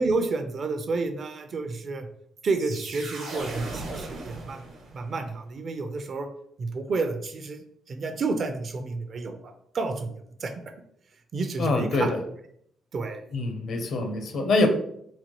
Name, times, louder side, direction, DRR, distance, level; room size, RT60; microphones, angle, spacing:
voice 1, 0.0-2.1 2.4-4.6 4.9-6.3 6.6-7.6 7.9-10.5 11.3-12.1 12.9-13.2, right 3 dB, 50° right, 7 dB, 0.5 m, -30 dB
sound 1, 2.4-5.2, right 2 dB, 80° right, 1.0 m, -38 dB
voice 2, 11.6-12.2 13.3-14.7, left 2 dB, 65° left, 5 dB, 0.7 m, -24 dB
4.2 x 2.2 x 3.0 m, 0.70 s
cardioid pair, 90°, 0 cm